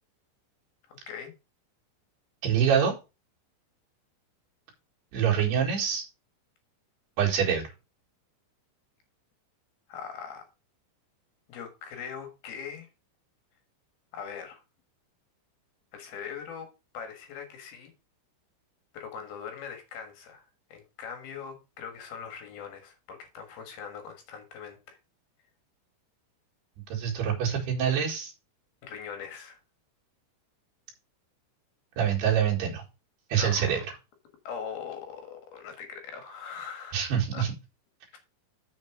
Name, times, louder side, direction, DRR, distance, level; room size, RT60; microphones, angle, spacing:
voice 1, 0.9-1.3 9.9-10.5 11.5-12.9 14.1-14.6 15.9-16.7 16.9-17.9 18.9-25.0 28.8-29.6 33.3-33.8 34.4-37.4, left 7 dB, 60° left, 3.0 m, -41 dB
voice 2, 2.4-2.9 5.1-6.1 7.2-7.7 26.9-28.3 32.0-32.8 33.3-33.8 36.9-37.5, right 8 dB, 65° right, 3.6 m, -25 dB
7.3 x 6.9 x 4.6 m
omnidirectional pair, 5.6 m